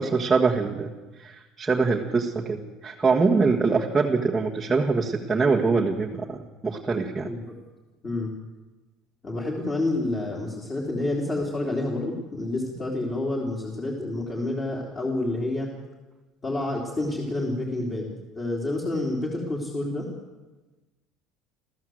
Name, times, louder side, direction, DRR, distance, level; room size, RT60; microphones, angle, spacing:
voice 1, 0.0-7.3, right 4 dB, 10° right, -2 dB, 1.6 m, -24 dB
voice 2, 7.2-7.5 8.0-8.3 9.2-15.7 16.4-20.1, left 2 dB, 20° left, -1 dB, 3.4 m, -29 dB
29.0 x 14.5 x 7.9 m, 1.2 s
cardioid pair, 175°, 0 cm